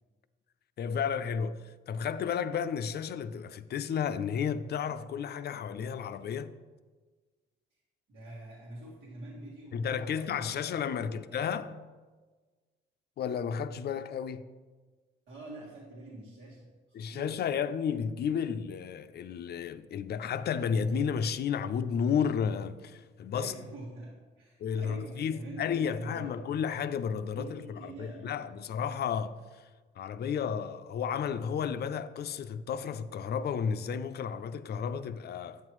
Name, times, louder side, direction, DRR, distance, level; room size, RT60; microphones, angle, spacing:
voice 1, 0.8-6.6 9.7-11.8 13.2-14.5 16.9-23.5 24.6-29.6 30.0-35.6, left 7 dB, 55° left, 0.5 m, -32 dB
voice 2, 8.1-11.5 15.3-17.3 23.3-26.6 27.3-28.5, right 1 dB, 75° right, 1.7 m, -46 dB
9.5 x 8.0 x 3.1 m
cardioid pair, 90°, 20 cm